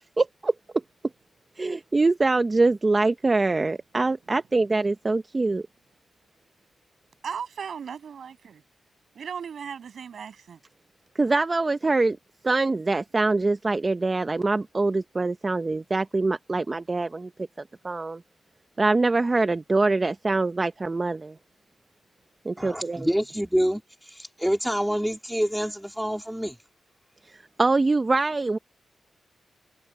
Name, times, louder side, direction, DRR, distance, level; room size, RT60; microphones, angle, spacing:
voice 1, 0.2-0.5 1.6-5.6 11.1-12.2 12.4-17.3 17.8-18.2 18.8-21.3 22.4-23.1 27.6-28.6, right 3 dB, 30° right, 0.8 m, -24 dB
voice 2, 7.2-8.6 9.1-10.6, right 7 dB, 70° right, 7.0 m, -36 dB
voice 3, 22.6-23.8 24.1-26.6, equal, 5° right, 3.0 m, -27 dB
cardioid pair, 75°, 0 cm